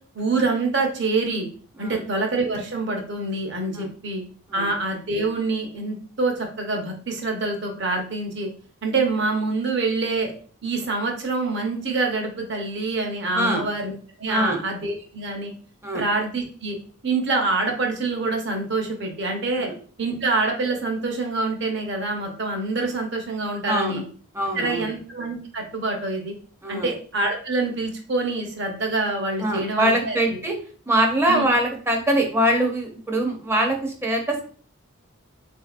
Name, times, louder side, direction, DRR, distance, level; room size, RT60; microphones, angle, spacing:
voice 1, 0.1-1.5 1.8-4.2 4.5-8.5 8.8-10.3 10.6-13.9 14.2-15.5 15.9-16.8 17.0-19.7 20.0-24.0 24.5-26.3 26.7-30.4 31.3-31.5, right 3 dB, 55° right, 2 dB, 0.7 m, -26 dB
voice 2, 13.3-13.6 14.3-14.6 15.8-16.0 19.6-19.7 23.7-24.0 24.3-24.9 26.6-26.9 29.4-30.6 30.9-34.5, right 1 dB, 10° right, 1 dB, 0.5 m, -23 dB
3.6 x 2.7 x 2.4 m, 0.43 s
head